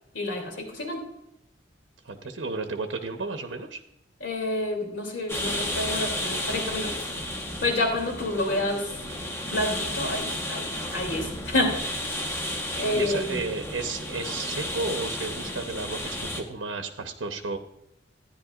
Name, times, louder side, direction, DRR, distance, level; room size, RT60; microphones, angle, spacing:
voice 1, 0.1-1.0 4.2-6.9 7.6-8.9 9.5-12.1 12.8-13.4, left 1 dB, 85° left, 2 dB, 2.8 m, -28 dB
voice 2, 2.0-3.8 12.7-17.6, right 3 dB, 85° right, 5 dB, 0.8 m, -33 dB
sound 1, 5.3-16.4, left 1 dB, 15° left, 1.1 m, -32 dB
13.0 x 10.5 x 2.5 m, 0.85 s
head